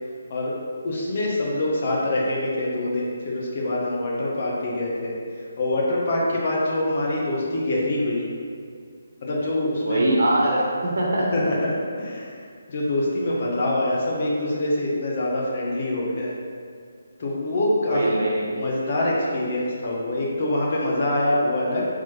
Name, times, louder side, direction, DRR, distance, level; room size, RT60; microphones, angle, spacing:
voice 1, 0.8-5.2 5.6-8.3 9.2-10.1 11.3-12.4 12.7-16.3 17.2-18.0 18.5-21.9, left 1 dB, 45° left, -4 dB, 1.4 m, -25 dB
voice 2, 9.8-11.3 17.9-18.5, right 1 dB, 60° right, -3 dB, 1.2 m, -22 dB
5.2 x 3.8 x 5.4 m, 2.2 s
figure-of-eight pair, 155°, 0 cm